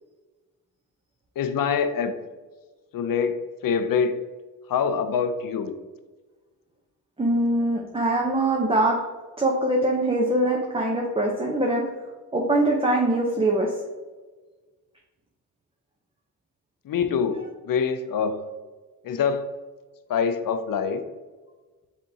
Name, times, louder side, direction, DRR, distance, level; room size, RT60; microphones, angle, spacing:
voice 1, 1.4-2.2 2.9-3.4 3.6-4.1 4.7-5.7 16.8-17.4 17.6-18.4 19.0-19.5 20.1-21.0, left 6 dB, 55° left, 9 dB, 0.6 m, -24 dB
voice 2, 7.2-8.9 9.4-11.8 12.3-13.7 17.4-17.5, right 1 dB, 15° right, -1 dB, 0.8 m, -23 dB
5.4 x 3.4 x 2.7 m, 1.3 s
supercardioid pair, 55°, 41 cm